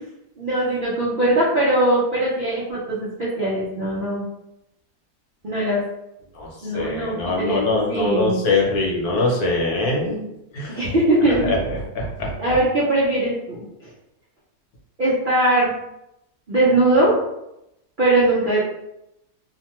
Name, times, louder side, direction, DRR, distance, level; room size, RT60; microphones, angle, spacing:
voice 1, 0.4-4.3 5.4-5.8 6.6-7.6 7.9-8.4 10.7-11.5 12.4-13.9 15.0-15.7 16.5-17.1 18.0-18.6, right 1 dB, 60° right, -8 dB, 0.5 m, -20 dB
voice 2, 6.7-10.2 10.5-10.8 11.4-11.6 12.0-12.3, left 2 dB, 70° left, -2 dB, 1.2 m, -22 dB
2.8 x 2.2 x 2.9 m, 0.86 s
omnidirectional pair, 1.7 m